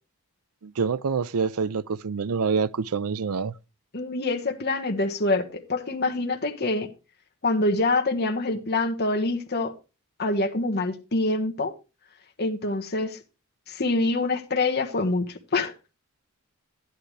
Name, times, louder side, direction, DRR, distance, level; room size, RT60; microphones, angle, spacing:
voice 1, 0.6-3.5, right 5 dB, 75° right, 0.5 m, -26 dB
voice 2, 3.9-6.9 7.4-9.7 10.2-11.7 12.4-13.2 13.7-15.7, left 2 dB, 45° left, 1.3 m, -25 dB
11.5 x 11.0 x 3.2 m
head